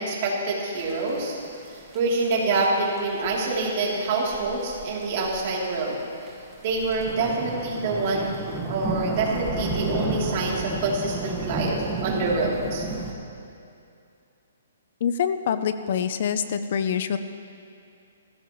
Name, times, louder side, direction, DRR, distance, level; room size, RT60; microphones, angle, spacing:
voice 1, 0.0-1.4 1.7-6.0 6.6-8.4 8.7-12.9, right 3 dB, 40° right, -4 dB, 3.2 m, -26 dB
sound 1, 0.8-13.1, right 2 dB, 10° right, 1.5 m, -33 dB
voice 2, 15.0-17.2, left 7 dB, 50° left, 11 dB, 0.6 m, -25 dB
20.5 x 15.5 x 3.1 m, 2.5 s
hypercardioid pair, 165°, 0 cm